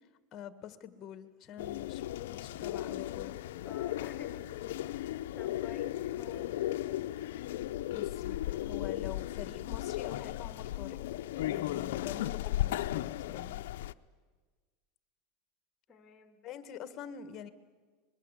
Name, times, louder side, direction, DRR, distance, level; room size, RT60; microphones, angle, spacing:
voice 1, 0.3-3.4 7.9-11.0 11.4-13.6 16.4-17.5, left 9 dB, 35° left, 12 dB, 1.7 m, -46 dB
sound 1, 1.6-13.9, left 13 dB, 80° left, 0.7 m, -36 dB
voice 2, 3.6-4.5 4.9-6.5 15.9-16.4, left 5 dB, 20° left, 6 dB, 2.9 m, -51 dB
24.5 x 21.5 x 8.4 m, 1.4 s
supercardioid pair, 145°, 0 cm